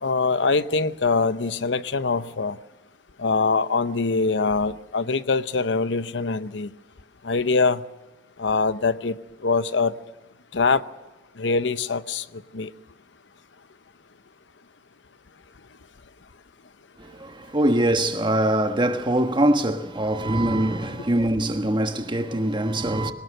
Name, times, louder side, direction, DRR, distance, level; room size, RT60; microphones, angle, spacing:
voice 1, 0.0-2.6 3.2-6.7 7.2-7.8 8.4-9.2 9.4-9.9 10.5-10.8 11.4-12.2 12.5-12.7, left 4 dB, 70° left, 0.8 m, -23 dB
voice 2, 17.0-23.1, right 1 dB, 25° right, 1.4 m, -23 dB
22.5 x 19.5 x 6.6 m
head